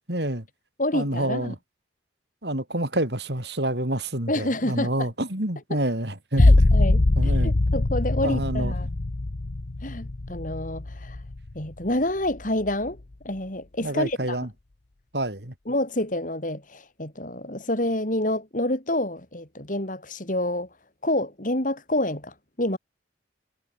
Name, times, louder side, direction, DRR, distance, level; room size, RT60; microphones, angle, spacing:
voice 1, 0.1-0.4 0.9-1.6 2.4-6.5 7.2-7.6 8.2-8.7 13.8-14.5 15.1-15.5, right 1 dB, 65° right, 5.5 m, -28 dB
voice 2, 0.8-1.5 4.3-5.1 6.4-8.9 9.8-11.2 11.5-13.0 13.2-14.4 15.7-20.7 21.0-22.8, left 1 dB, 45° left, 4.5 m, -28 dB
sound 1, 6.4-11.8 12.3-12.9, left 2 dB, 65° left, 1.0 m, -22 dB
head